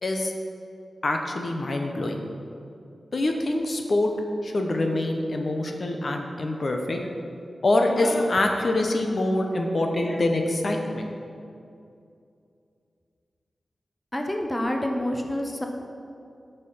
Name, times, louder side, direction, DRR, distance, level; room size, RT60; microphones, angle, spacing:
voice 1, 0.0-0.3 1.0-2.2 3.1-4.1 4.4-7.1 7.6-11.1, left 2 dB, 55° left, 3 dB, 0.8 m, -25 dB
voice 2, 14.1-15.7, left 1 dB, 15° left, 2 dB, 0.8 m, -27 dB
8.2 x 5.5 x 5.6 m, 2.5 s
wide cardioid pair, 75°, 0 cm